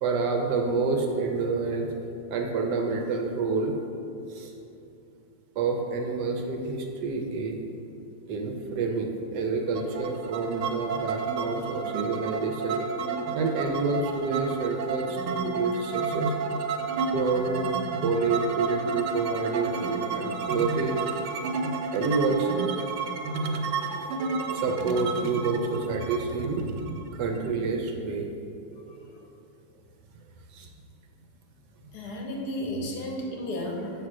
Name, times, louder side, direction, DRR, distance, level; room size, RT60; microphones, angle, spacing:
voice 1, 0.0-1.9 2.3-3.7 4.3-4.5 5.6-7.6 8.3-12.8 13.3-16.3 17.1-17.6 18.0-21.0 21.9-22.5 24.5-28.3 30.5-30.7, right 4 dB, 70° right, 3 dB, 1.0 m, -28 dB
sound 1, 9.7-27.5, right 4 dB, 85° right, 1.5 m, -31 dB
voice 2, 31.9-33.9, left 1 dB, 60° left, 0 dB, 1.2 m, -33 dB
7.2 x 3.3 x 6.0 m, 2.7 s
omnidirectional pair, 2.3 m